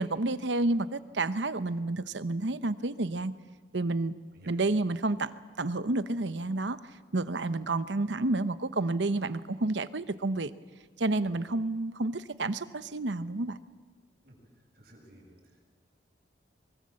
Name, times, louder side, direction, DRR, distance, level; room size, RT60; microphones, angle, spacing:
voice 1, 0.0-3.3 3.7-4.1 4.5-6.8 7.1-10.5 11.0-13.6, right 2 dB, 80° right, 14 dB, 0.9 m, -30 dB
voice 2, 14.7-15.6, right 1 dB, 55° right, -1 dB, 7.5 m, -55 dB
23.5 x 23.5 x 7.7 m, 1.5 s
head